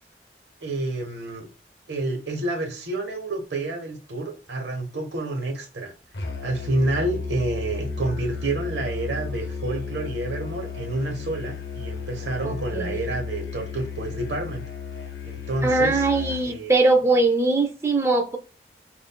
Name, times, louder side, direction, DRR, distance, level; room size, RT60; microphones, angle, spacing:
voice 1, 0.6-1.4 1.9-5.9 6.4-14.6 15.2-16.1 16.4-16.7, right 2 dB, 85° right, 1.0 m, -29 dB
Musical instrument, 6.1-16.5, left 5 dB, 65° left, 0.7 m, -33 dB
voice 2, 12.5-12.9 15.6-18.4, right 2 dB, 15° right, 0.4 m, -21 dB
5.6 x 2.5 x 2.2 m
head